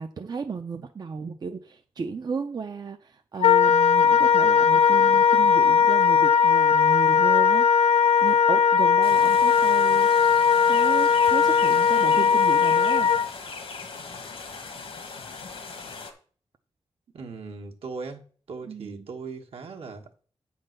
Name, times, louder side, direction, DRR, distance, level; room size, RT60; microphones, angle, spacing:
voice 1, 0.0-7.7 8.2-10.3 10.7-13.1 18.7-19.1, right 5 dB, 45° right, 0.5 m, -34 dB
Wind instrument woodwind instrument, 3.4-13.3, left 7 dB, 85° left, 0.4 m, -19 dB
sound 1, 9.0-16.1, left 4 dB, 70° left, 1.3 m, -39 dB
voice 2, 17.1-18.2 18.5-20.2, right 4 dB, 75° right, 1.3 m, -38 dB
8.7 x 3.9 x 6.5 m
wide cardioid pair, 140°, 10 cm